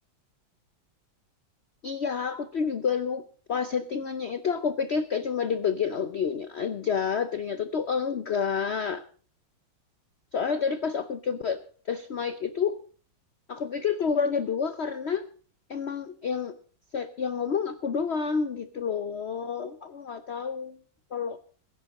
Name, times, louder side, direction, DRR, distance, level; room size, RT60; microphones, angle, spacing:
voice 1, 1.8-3.2 3.5-9.0 10.3-11.6 11.9-12.8 13.5-15.2 15.7-16.6 16.9-20.7 21.1-21.4, left 6 dB, 80° left, 11 dB, 0.6 m, -29 dB
21.5 x 9.9 x 4.1 m, 0.42 s
omnidirectional pair, 2.1 m